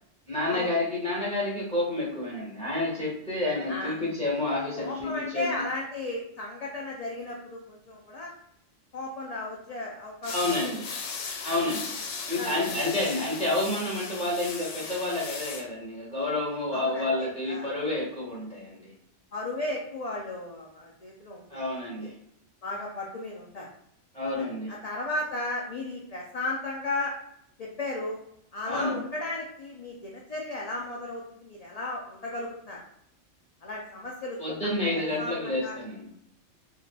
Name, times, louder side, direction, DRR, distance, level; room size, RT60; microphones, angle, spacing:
voice 1, 0.3-5.6 10.3-10.9 11.4-11.9 12.3-18.9 21.5-22.1 24.1-24.7 28.6-29.0 34.4-36.1, left 2 dB, 5° left, -7 dB, 1.3 m, -29 dB
voice 2, 4.8-8.3 8.9-10.3 10.6-10.7 11.4-11.6 12.3-12.6 16.7-17.1 17.5-17.7 19.3-22.1 22.6-23.7 24.4-27.1 27.6-28.2 28.5-32.8 33.6-35.8, left 2 dB, 55° left, -2 dB, 0.4 m, -35 dB
sound 1, 10.2-15.7, left 5 dB, 90° left, 1.0 m, -37 dB
4.0 x 2.8 x 2.2 m, 0.73 s
omnidirectional pair, 1.3 m